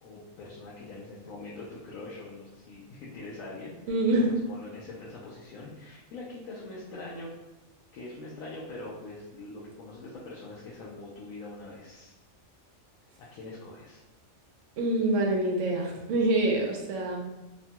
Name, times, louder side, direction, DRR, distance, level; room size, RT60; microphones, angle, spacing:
voice 1, 0.0-3.7 4.1-7.3 7.9-12.2 13.2-14.0, left 2 dB, 80° left, -5 dB, 1.0 m, -43 dB
voice 2, 3.9-4.3 14.8-17.2, right 2 dB, 70° right, 0 dB, 0.9 m, -25 dB
2.9 x 2.2 x 2.8 m, 1.0 s
omnidirectional pair, 1.4 m